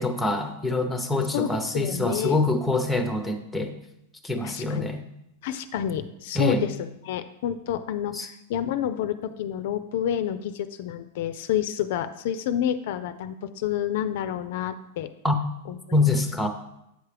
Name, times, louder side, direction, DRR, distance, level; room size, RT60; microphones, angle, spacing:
voice 1, 0.0-3.7 4.2-5.0 6.4-6.6 8.1-8.3 15.2-15.4 15.9-16.5, left 2 dB, 5° left, 7 dB, 0.6 m, -25 dB
voice 2, 1.3-2.4 4.4-4.9 5.4-15.1 15.7-16.2, left 10 dB, 65° left, 11 dB, 0.3 m, -29 dB
8.0 x 4.7 x 3.3 m, 0.86 s
supercardioid pair, 135°, 0 cm